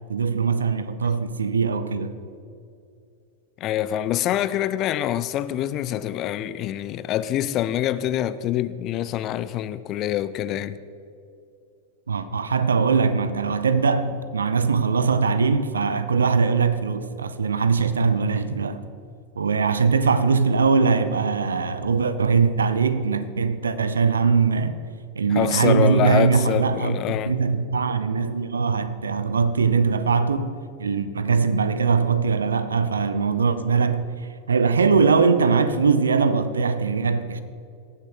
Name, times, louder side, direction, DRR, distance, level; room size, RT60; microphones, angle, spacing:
voice 1, 0.1-2.2 12.1-18.8 19.4-24.8 25.1-34.1 34.5-37.4, right 5 dB, 70° right, 0.7 m, -21 dB
voice 2, 3.6-10.8 25.3-27.3, left 12 dB, 35° left, 0.5 m, -25 dB
18.0 x 7.4 x 6.7 m
figure-of-eight pair, 90°, 0 cm